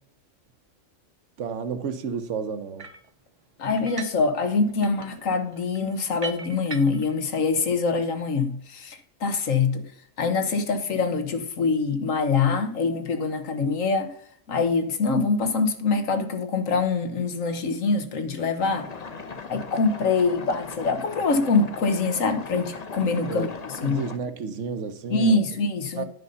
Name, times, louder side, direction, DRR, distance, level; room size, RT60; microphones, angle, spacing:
voice 1, 1.4-2.9 23.3-23.5 23.8-25.4 26.0-26.1, right 6 dB, 70° right, 1.2 m, -31 dB
sound 1, 2.8-3.1 3.8-4.3 4.5-7.2, right 4 dB, 30° right, 0.8 m, -39 dB
voice 2, 3.6-9.8 10.2-14.1 14.5-18.9 19.5-23.5 23.8-24.0 25.1-26.0, left 4 dB, 85° left, 1.5 m, -24 dB
sound 2, 18.6-24.2, left 4 dB, 35° left, 0.7 m, -39 dB
9.8 x 5.4 x 5.5 m
omnidirectional pair, 1.3 m